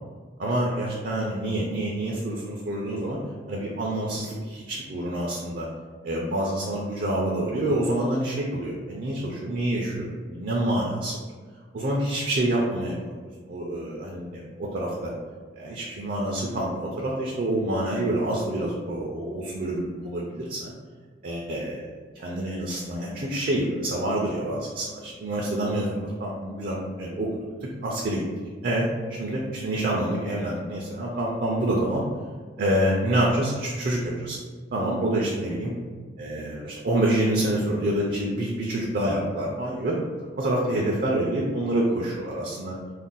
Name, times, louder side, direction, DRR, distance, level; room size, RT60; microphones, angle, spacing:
voice 1, 0.4-3.2 3.5-5.7 6.0-11.2 11.7-13.0 13.5-15.1 15.6-20.7 21.2-21.9 22.1-27.3 27.6-28.2 28.6-32.0 32.6-34.4 34.7-35.7 36.2-40.0 40.4-42.8, right 1 dB, 50° right, -3 dB, 0.4 m, -27 dB
2.5 x 2.1 x 3.7 m, 1.5 s
head